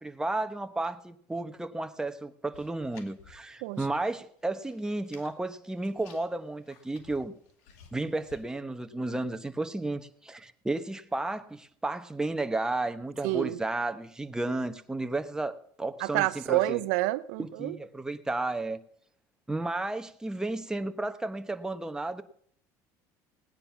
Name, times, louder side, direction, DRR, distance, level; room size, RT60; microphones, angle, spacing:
voice 1, 0.0-7.3 7.9-16.8 17.4-18.8 19.5-22.2, right 2 dB, 10° right, 1.1 m, -33 dB
sound 1, 2.5-4.1 4.4-5.4 5.7-8.4, left 6 dB, 90° left, 2.1 m, -56 dB
voice 2, 13.2-13.6 16.0-17.8, right 18 dB, 85° right, 0.5 m, -28 dB
17.0 x 9.9 x 6.0 m
supercardioid pair, 100°, 8 cm